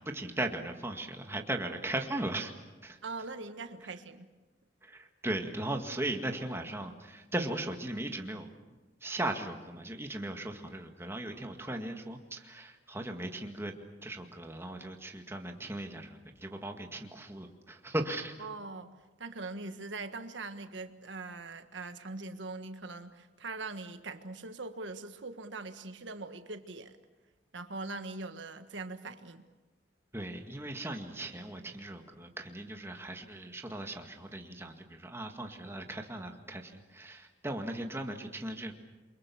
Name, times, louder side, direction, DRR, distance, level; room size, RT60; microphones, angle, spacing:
voice 1, 0.1-2.5 2.8-3.0 4.8-8.5 9.0-13.7 14.0-18.3 30.1-38.7, right 1 dB, 15° right, 4 dB, 2.0 m, -38 dB
voice 2, 3.0-4.3 18.4-18.9 19.2-26.9 27.5-29.4, right 3 dB, 90° right, 8 dB, 1.5 m, -42 dB
28.5 x 24.0 x 7.2 m, 1.2 s
head